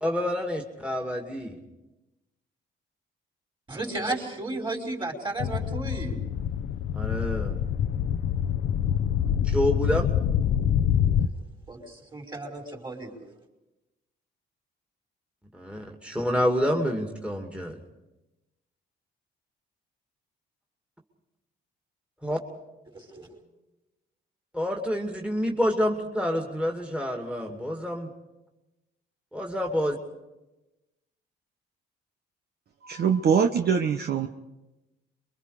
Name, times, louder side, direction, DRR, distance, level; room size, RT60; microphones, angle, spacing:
voice 1, 0.0-1.6 6.9-7.6 9.4-10.1 15.5-17.8 22.2-22.4 24.5-28.1 29.3-29.9, equal, 5° right, 1 dB, 2.5 m, -28 dB
voice 2, 3.7-6.2 11.2-11.3 11.7-13.2 22.9-23.3, right 2 dB, 25° right, 3 dB, 5.1 m, -34 dB
sound 1, 5.4-11.3, left 9 dB, 80° left, 0.8 m, -26 dB
voice 3, 32.8-34.3, right 6 dB, 55° right, 5 dB, 1.1 m, -23 dB
27.5 x 23.0 x 5.0 m, 1.0 s
cardioid pair, 90°, 20 cm